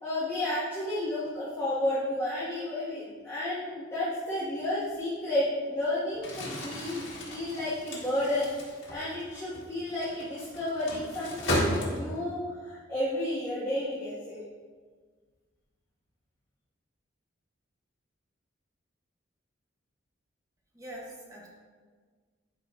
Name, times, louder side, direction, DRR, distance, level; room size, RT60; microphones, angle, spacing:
voice 1, 0.0-8.5 8.9-14.4, left 1 dB, 10° left, -13 dB, 1.7 m, -32 dB
Crumpling crinkling, 6.1-12.3, equal, 75° left, 1.8 m, -34 dB
voice 2, 20.7-21.5, right 1 dB, 15° right, -3 dB, 1.2 m, -43 dB
11.0 x 4.9 x 2.6 m, 1.5 s
head